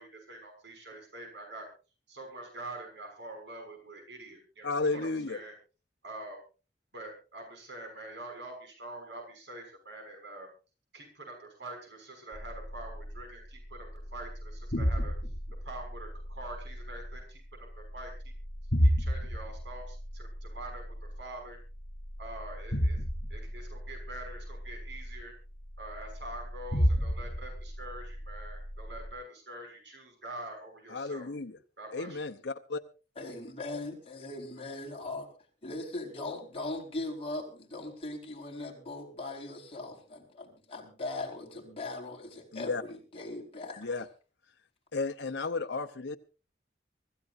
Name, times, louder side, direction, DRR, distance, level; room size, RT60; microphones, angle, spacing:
voice 1, 0.0-1.7 2.1-5.0 5.3-5.5 6.0-6.4 6.9-10.5 10.9-11.3 11.6-15.1 15.6-17.4 17.9-18.1 18.8-20.8 21.2-21.6 22.2-23.0 23.3-25.3 25.8-31.3 31.8-32.2, right 2 dB, 80° right, 3 dB, 6.4 m, -45 dB
voice 2, 4.6-5.4 30.9-31.6 31.9-32.8 42.5-42.8 43.8-44.0 44.9-46.2, left 3 dB, 85° left, 6 dB, 0.9 m, -33 dB
sound 1, 12.3-29.1, equal, 55° left, 4.2 m, -34 dB
voice 3, 33.1-35.3 35.6-43.9, left 2 dB, 35° left, -1 dB, 4.7 m, -39 dB
25.0 x 14.5 x 2.6 m, 0.34 s
head